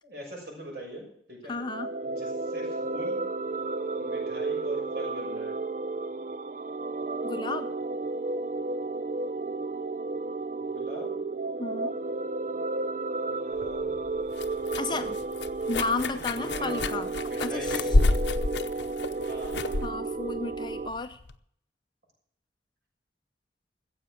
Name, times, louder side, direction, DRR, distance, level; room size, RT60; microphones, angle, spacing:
voice 1, 0.0-1.6 2.0-3.2 4.0-5.5 10.6-11.2 13.2-14.0 14.9-15.3 15.9-16.0 16.3-17.0 17.2-18.1 19.3-19.7, right 1 dB, 60° right, -1 dB, 6.5 m, -42 dB
voice 2, 1.5-1.9 7.2-7.7 11.6-12.0 14.8-15.2 15.7-17.1 17.4-17.8 19.8-21.2, left 3 dB, 25° left, 8 dB, 0.6 m, -32 dB
sound 1, 1.6-20.9, right 3 dB, 40° right, 0.5 m, -32 dB
sound 2, 13.6-21.3, left 2 dB, 70° left, 0.8 m, -30 dB
14.5 x 8.0 x 7.5 m, 0.67 s
head